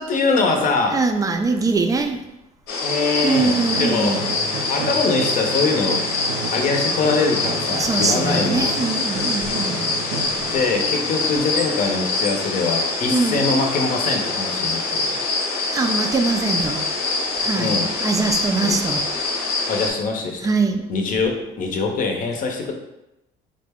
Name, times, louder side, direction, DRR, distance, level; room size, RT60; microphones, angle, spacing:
voice 1, 0.0-1.0 2.8-4.3 4.7-6.0 6.5-8.7 10.5-15.2 17.6-17.9 18.6-18.8 19.7-20.4 20.9-22.7, left 3 dB, 50° left, 0.6 m, -23 dB
voice 2, 0.9-2.2 3.2-4.2 7.7-10.0 13.1-13.4 15.7-16.8 17.4-19.0 20.4-20.8, right 4 dB, 20° right, 0.3 m, -22 dB
sound 1, 2.7-19.9, left 3 dB, 90° left, 0.8 m, -24 dB
sound 2, 3.3-12.1, right 4 dB, 90° right, 0.5 m, -33 dB
3.7 x 2.1 x 3.4 m
cardioid pair, 110°, 17 cm